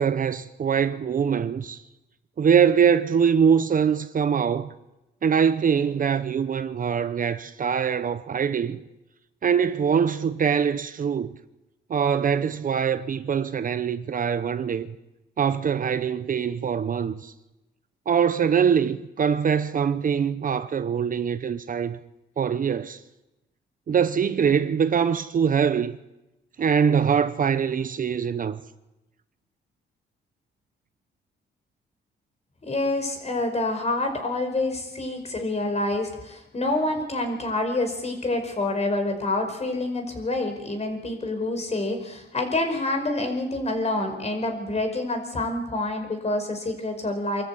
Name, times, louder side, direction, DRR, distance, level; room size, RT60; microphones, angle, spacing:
voice 1, 0.0-1.8 2.4-4.7 5.2-8.8 9.4-11.3 11.9-15.0 15.4-17.3 18.1-22.0 22.4-23.0 23.9-26.0 26.6-28.6, right 7 dB, 45° right, 0.9 m, -23 dB
voice 2, 32.7-47.4, left 2 dB, 35° left, 5.2 m, -27 dB
25.5 x 13.5 x 8.5 m
cardioid pair, 90°, 20 cm